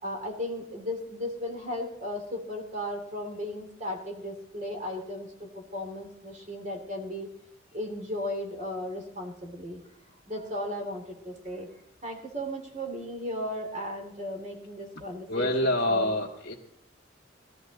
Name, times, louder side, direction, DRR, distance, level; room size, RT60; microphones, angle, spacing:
voice 1, 0.0-7.3 7.7-9.8 10.3-11.7 12.0-16.1, left 1 dB, 35° right, 2 dB, 2.7 m, -36 dB
voice 2, 14.9-16.5, left 1 dB, 50° left, -5 dB, 1.8 m, -27 dB
19.5 x 13.5 x 4.0 m, 0.73 s
head